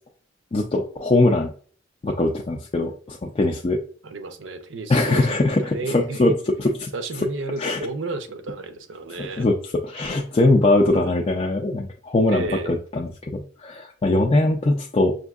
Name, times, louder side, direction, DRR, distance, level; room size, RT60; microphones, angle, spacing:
voice 1, 0.5-1.5 2.0-3.8 4.9-6.9 7.2-7.3 7.6-7.8 9.2-15.2, left 2 dB, 30° left, 0.4 m, -21 dB
voice 2, 4.0-6.4 6.9-9.5 11.0-11.1 12.3-12.8, right 3 dB, 75° right, 0.6 m, -32 dB
5.9 x 2.6 x 2.4 m
head